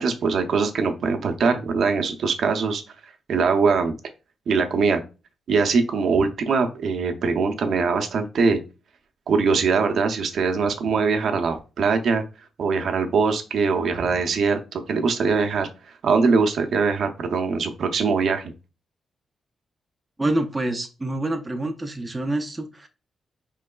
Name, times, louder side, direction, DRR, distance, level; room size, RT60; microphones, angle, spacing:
voice 1, 0.0-2.8 3.3-3.9 4.5-5.0 5.5-8.6 9.3-12.2 12.6-15.7 16.0-18.5, right 4 dB, 60° right, 5 dB, 0.6 m, -22 dB
voice 2, 20.2-22.9, right 1 dB, 15° right, 4 dB, 0.4 m, -26 dB
4.5 x 3.1 x 2.2 m, 0.31 s
wide cardioid pair, 145°, 0 cm